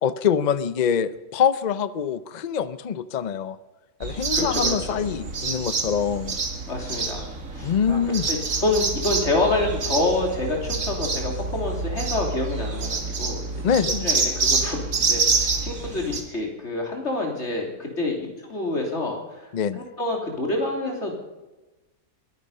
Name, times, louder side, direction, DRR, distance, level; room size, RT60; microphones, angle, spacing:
voice 1, 0.0-3.6 4.0-6.3 7.6-8.3 13.6-14.1 19.5-19.8, left 7 dB, 70° left, 14 dB, 0.4 m, -24 dB
sound 1, 4.0-16.2, right 4 dB, 60° right, 2.1 m, -27 dB
voice 2, 4.3-5.0 6.7-7.3 7.5-8.0 8.3-13.6 14.0-19.5 19.7-21.2, left 2 dB, 45° left, 1 dB, 3.4 m, -27 dB
22.0 x 10.0 x 5.5 m, 1.1 s
omnidirectional pair, 1.6 m